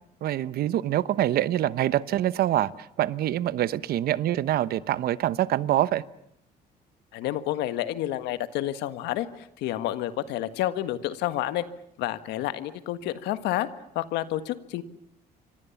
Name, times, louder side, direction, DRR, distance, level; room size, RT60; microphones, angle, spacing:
voice 1, 0.2-6.0, right 13 dB, 65° right, 1.0 m, -25 dB
voice 2, 7.1-11.6 12.0-13.7 13.9-14.8, left 13 dB, 90° left, 1.6 m, -29 dB
28.5 x 25.0 x 7.2 m
cardioid pair, 110°, 17 cm